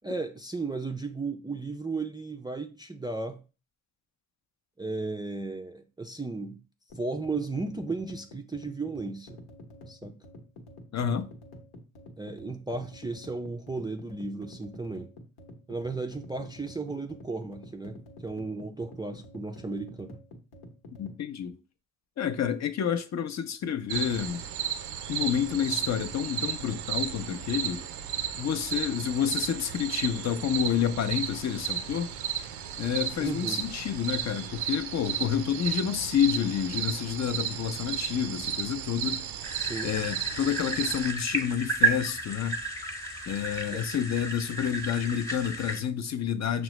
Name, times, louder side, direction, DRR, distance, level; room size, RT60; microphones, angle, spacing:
voice 1, 0.0-3.4 4.8-6.6 7.0-9.4 9.9-10.1 12.2-15.1 15.7-20.2 33.2-33.6 39.6-39.9 43.7-43.8, right 3 dB, 10° right, 0.3 m, -35 dB
sound 1, 6.9-21.2, left 1 dB, 85° left, 1.0 m, -48 dB
voice 2, 10.9-11.3 21.0-21.6 22.2-24.5 25.1-27.9 28.3-32.1 32.8-39.3 39.8-42.6 43.3-46.6, left 8 dB, 45° left, 0.5 m, -29 dB
sound 2, 23.9-41.1, right 9 dB, 85° right, 0.5 m, -34 dB
sound 3, 39.4-45.8, right 3 dB, 10° left, 0.9 m, -32 dB
6.0 x 2.0 x 3.0 m
cardioid pair, 65°, 38 cm